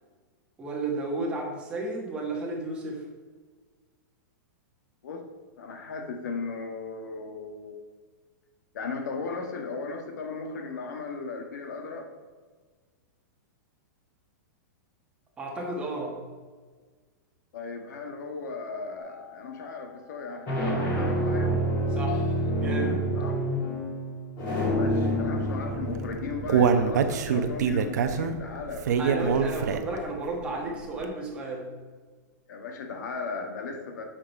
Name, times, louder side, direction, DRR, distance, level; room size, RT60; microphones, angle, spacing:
voice 1, 0.6-3.0 15.4-16.2 22.0-22.3 22.6-23.0 29.0-31.7, right 2 dB, 10° right, -2 dB, 1.4 m, -32 dB
voice 2, 5.6-7.7 8.7-12.1 17.5-21.6 23.1-23.4 24.4-29.0 32.5-34.0, left 4 dB, 65° left, 4 dB, 1.5 m, -37 dB
sound 1, 19.0-19.4 20.2-28.8, equal, 25° left, 2.7 m, -29 dB
Human voice, 25.9-30.1 30.5-30.6 31.0-31.1, right 6 dB, 65° right, 0.8 m, -24 dB
8.6 x 6.0 x 4.7 m, 1.5 s
supercardioid pair, 175°, 10 cm